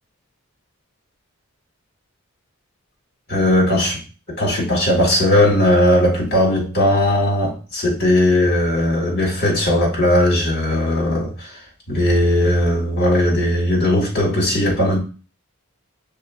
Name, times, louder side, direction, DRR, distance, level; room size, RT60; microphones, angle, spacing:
voice 1, 3.3-4.0 4.4-11.5 11.9-15.0, left 1 dB, 45° left, 1.9 m, -18 dB
5.5 x 3.6 x 2.5 m
head